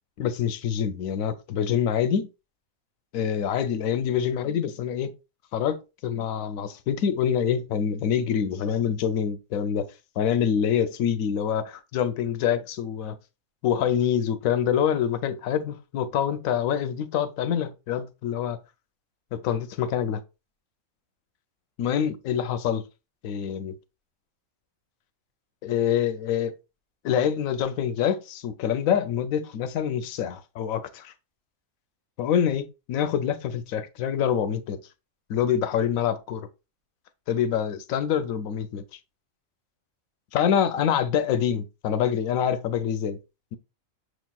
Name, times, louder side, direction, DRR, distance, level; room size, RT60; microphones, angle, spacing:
voice 1, 0.2-2.3 3.1-5.1 5.5-9.9 10.2-13.2 13.6-18.6 19.3-20.2 21.8-22.8 23.2-23.7 25.6-26.5 27.0-31.1 32.2-34.8 35.3-36.5 37.3-38.8 40.3-43.2, left 8 dB, 85° left, 1.0 m, -26 dB
6.4 x 3.0 x 2.2 m
omnidirectional pair, 1.4 m